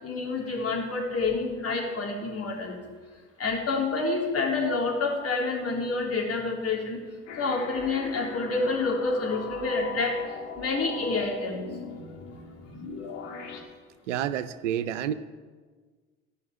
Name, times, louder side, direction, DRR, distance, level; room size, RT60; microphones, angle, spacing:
voice 1, 0.0-2.7 3.4-7.0 7.4-10.1 10.6-11.7, left 3 dB, 40° left, -1 dB, 3.7 m, -28 dB
sound 1, 7.3-13.6, left 5 dB, 85° left, 1.8 m, -39 dB
voice 2, 14.1-15.1, right 10 dB, 90° right, 14 dB, 0.6 m, -29 dB
14.0 x 5.8 x 9.0 m, 1.5 s
hypercardioid pair, 55°, 35 cm